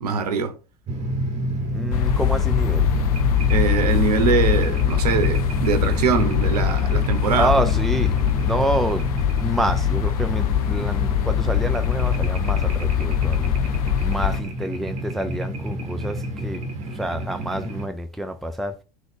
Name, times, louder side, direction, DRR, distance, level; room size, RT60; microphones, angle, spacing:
voice 1, 0.0-0.5 3.5-7.6, right 5 dB, 70° right, 0.8 m, -22 dB
sound 1, 0.9-17.9, right 1 dB, 35° right, 1.1 m, -29 dB
voice 2, 1.7-2.9 7.3-9.1 9.3-13.6 14.0-18.8, right 1 dB, ahead, 0.4 m, -27 dB
sound 2, 1.9-14.4, left 11 dB, 60° left, 0.6 m, -22 dB
3.8 x 2.9 x 3.5 m
figure-of-eight pair, 80°, 21 cm